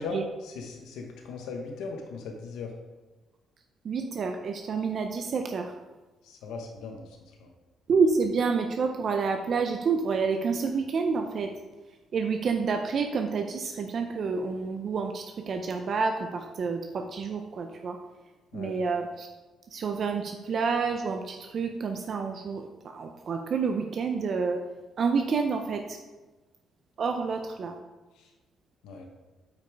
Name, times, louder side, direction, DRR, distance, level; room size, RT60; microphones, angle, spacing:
voice 1, 0.0-2.7 6.2-7.5 18.5-18.8 28.2-28.3 28.8-29.1, left 3 dB, 90° left, 2 dB, 1.0 m, -38 dB
voice 2, 3.8-5.7 7.9-11.5 12.1-18.0 18.5-19.3 19.7-24.6 25.0-26.0 27.0-27.7, right 5 dB, 55° right, 5 dB, 0.6 m, -28 dB
8.2 x 5.3 x 4.7 m, 1.2 s
cardioid pair, 90°, 0 cm